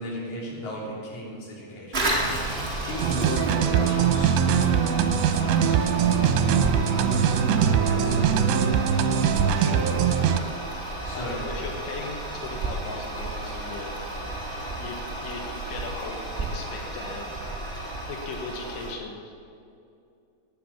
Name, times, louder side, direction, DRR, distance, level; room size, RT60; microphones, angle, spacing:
voice 1, 0.0-7.3 7.6-8.5 9.3-10.1 11.0-11.4 13.8-14.0 14.5-14.6, equal, 45° left, -3 dB, 4.4 m, -38 dB
Toilet flush, 1.9-18.9, right 2 dB, 60° right, 0.6 m, -32 dB
sound 1, 3.0-10.4, right 8 dB, 85° right, 2.9 m, -22 dB
voice 2, 3.6-3.9 11.1-14.3 14.8-15.4 15.7-19.3, left 4 dB, 85° left, 2 dB, 3.7 m, -38 dB
18.5 x 9.2 x 7.2 m, 2.5 s
omnidirectional pair, 5.2 m